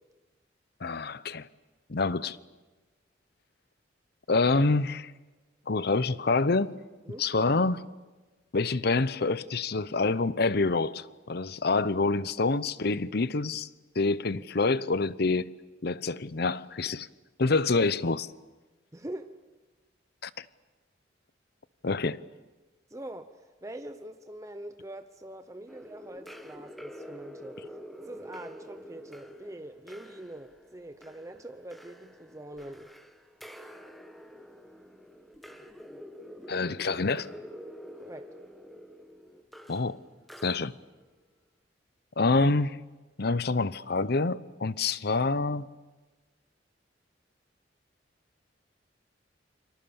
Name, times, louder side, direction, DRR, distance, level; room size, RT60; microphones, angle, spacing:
voice 1, 0.8-1.5 1.9-2.4 4.3-5.1 5.7-6.8 7.2-7.9 8.5-13.7 14.0-15.5 15.8-17.1 17.4-18.3 20.2-20.4 21.8-22.2 36.5-37.3 39.7-40.0 40.4-40.7 42.2-42.8 43.2-45.7, left 3 dB, 60° left, 0.8 m, -27 dB
voice 2, 18.9-19.3 22.9-27.6 28.0-32.9 38.0-38.3, right 1 dB, 15° right, 0.9 m, -43 dB
sound 1, 25.7-41.0, equal, ahead, 1.4 m, -47 dB
29.5 x 25.0 x 7.1 m
head